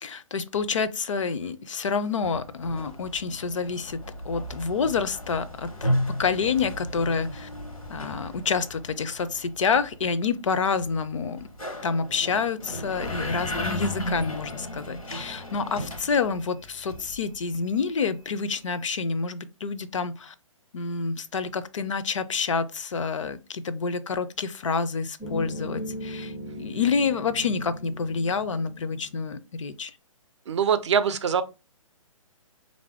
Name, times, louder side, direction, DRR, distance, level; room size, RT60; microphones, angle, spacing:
voice 1, 0.0-7.5 7.9-11.5 11.8-20.3 20.7-29.9, left 5 dB, 60° left, 0.4 m, -28 dB
sound 1, 2.2-17.7, left 1 dB, 90° left, 0.8 m, -35 dB
sound 2, 25.2-29.2, equal, 5° left, 0.4 m, -38 dB
voice 2, 30.5-31.4, right 7 dB, 55° right, 0.5 m, -23 dB
3.4 x 2.6 x 3.3 m
figure-of-eight pair, 130°, 18 cm